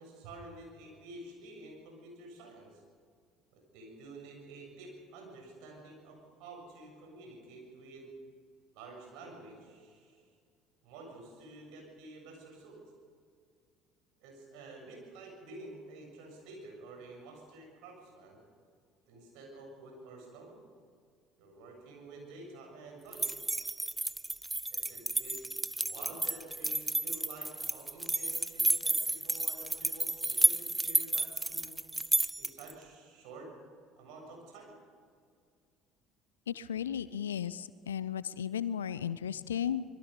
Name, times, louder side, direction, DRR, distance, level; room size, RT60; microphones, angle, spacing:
voice 1, 0.0-2.8 3.5-8.1 8.7-10.3 10.8-12.8 14.2-18.4 19.1-20.6 21.4-23.4 24.7-25.4 25.7-31.8 32.4-33.5 34.0-34.8, right 2 dB, 60° right, 1 dB, 7.3 m, -50 dB
sound 1, 23.1-32.7, right 2 dB, 10° right, 0.7 m, -31 dB
voice 2, 36.5-39.8, left 9 dB, 75° left, 18 dB, 0.6 m, -35 dB
25.5 x 21.5 x 5.3 m, 2.1 s
figure-of-eight pair, 60°, 0 cm